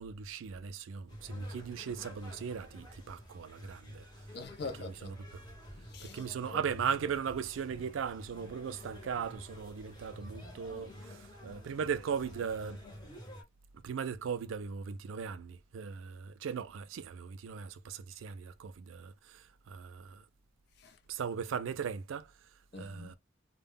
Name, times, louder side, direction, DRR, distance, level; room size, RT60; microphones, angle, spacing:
voice 1, 0.0-4.1 6.1-12.8 13.7-20.3 21.1-23.1, right 7 dB, 90° right, 0.4 m, -38 dB
sound 1, 1.1-13.4, equal, 20° left, 0.9 m, -49 dB
voice 2, 4.3-5.3 5.8-6.6 20.8-21.0 22.7-23.2, left 3 dB, 55° left, 0.5 m, -45 dB
2.1 x 2.0 x 3.4 m
head